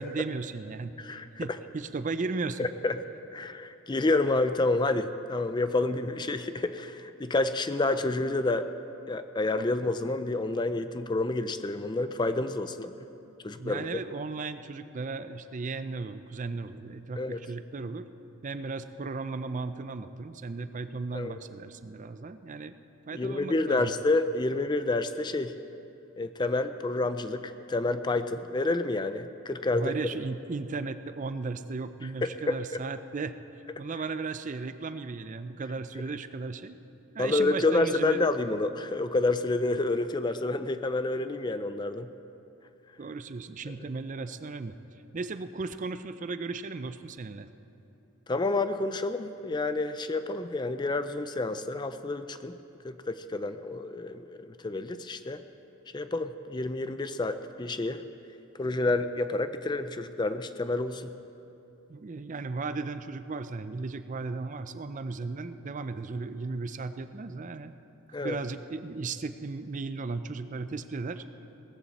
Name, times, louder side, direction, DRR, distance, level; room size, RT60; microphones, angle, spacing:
voice 1, 0.0-0.9 1.4-2.7 12.8-18.1 18.4-22.7 23.1-23.9 29.7-33.4 33.8-36.8 37.1-38.2 43.0-44.7 45.1-47.5 61.9-67.7 68.2-71.2, right 3 dB, 35° right, 11 dB, 0.4 m, -36 dB
voice 2, 1.0-1.5 2.6-2.9 3.3-8.7 9.1-12.9 13.4-14.0 17.2-17.4 21.1-21.4 23.1-25.5 26.2-29.9 32.2-32.6 37.2-42.1 48.3-52.6 52.8-55.4 55.9-58.0 58.6-61.1 68.1-68.4, left 2 dB, 20° left, 11 dB, 0.4 m, -29 dB
18.5 x 14.5 x 4.1 m, 2.9 s
head